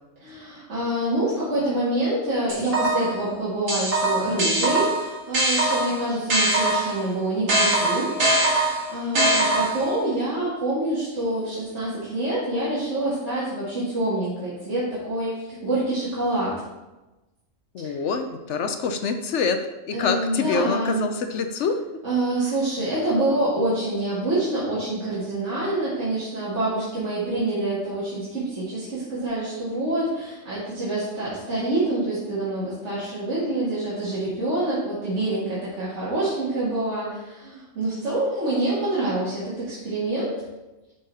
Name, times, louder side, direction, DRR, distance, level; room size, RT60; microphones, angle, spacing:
voice 1, 0.2-8.1 8.4-16.5 17.8-17.9 19.9-21.1 22.0-40.4, right 1 dB, 60° right, -10 dB, 2.3 m, -26 dB
sound 1, 2.5-3.2 3.7-7.0 7.5-10.0, right 1 dB, 90° right, 2.2 m, -22 dB
voice 2, 17.7-19.6 19.9-21.8, left 5 dB, 70° left, 7 dB, 0.9 m, -25 dB
10.5 x 3.9 x 4.1 m, 1.1 s
omnidirectional pair, 1.3 m